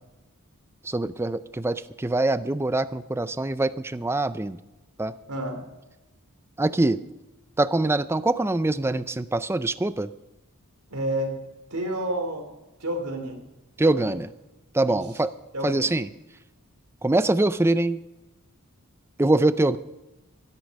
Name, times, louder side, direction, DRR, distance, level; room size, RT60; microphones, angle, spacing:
voice 1, 0.8-4.6 5.0-5.1 6.6-7.0 7.6-10.1 13.8-14.3 14.7-15.3 15.6-16.1 17.0-18.0 19.2-19.8, right 2 dB, 10° right, 14 dB, 0.4 m, -24 dB
voice 2, 5.3-5.6 10.9-11.4 11.7-12.4 12.8-13.4 13.8-14.1 14.9-15.0 15.5-15.9, right 1 dB, 85° right, 4 dB, 3.0 m, -30 dB
14.0 x 13.0 x 5.3 m, 1.0 s
head